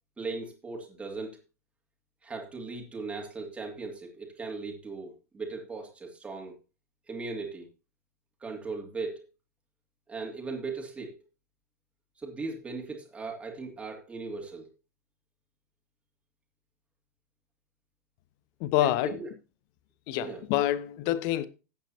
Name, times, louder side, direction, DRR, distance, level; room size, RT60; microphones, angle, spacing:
voice 1, 0.2-1.4 2.2-6.5 7.1-7.7 8.4-9.3 10.1-11.2 12.2-14.7 18.8-19.3 20.1-20.5, right 4 dB, 15° right, 2.6 m, -38 dB
voice 2, 18.6-19.2 20.1-21.5, left 14 dB, 45° left, 0.8 m, -27 dB
14.0 x 9.0 x 2.8 m
figure-of-eight pair, 90°, 9 cm